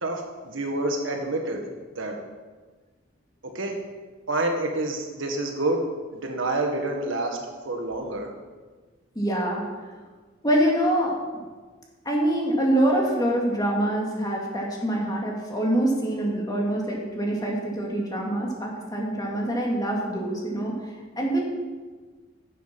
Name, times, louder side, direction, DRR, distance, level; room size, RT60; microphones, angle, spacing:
voice 1, 0.0-1.6 1.9-2.1 3.5-3.7 4.3-5.8 6.1-7.4 7.6-8.3, right 2 dB, 85° right, 2 dB, 1.6 m, -28 dB
voice 2, 9.2-9.6 10.4-11.4 12.1-20.7 21.2-21.4, right 1 dB, 20° left, -1 dB, 2.1 m, -25 dB
10.5 x 7.1 x 5.9 m, 1.4 s
head